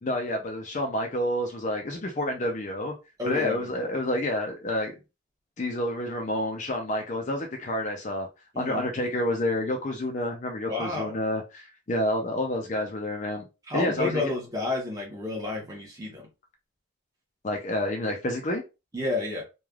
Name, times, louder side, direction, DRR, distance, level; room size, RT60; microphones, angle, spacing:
voice 1, 0.0-2.9 3.2-4.9 5.6-8.3 8.6-13.5 13.7-14.3 17.4-18.6, left 1 dB, 35° left, 0.4 m, -29 dB
voice 2, 3.2-3.7 8.5-8.8 10.7-11.1 13.7-16.2 18.9-19.4, left 3 dB, 15° right, 0.9 m, -30 dB
3.2 x 2.3 x 2.3 m
head